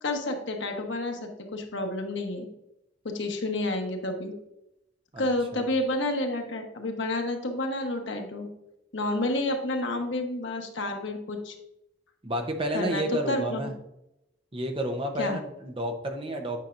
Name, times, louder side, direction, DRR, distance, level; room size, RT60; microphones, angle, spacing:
voice 1, 0.0-2.4 3.0-4.3 5.2-8.5 8.9-11.5 12.7-13.7 15.2-15.4, left 2 dB, 80° left, 3 dB, 1.1 m, -30 dB
voice 2, 12.2-13.8 14.5-16.6, right 1 dB, 30° right, 4 dB, 0.8 m, -31 dB
8.9 x 5.8 x 2.5 m, 0.85 s
head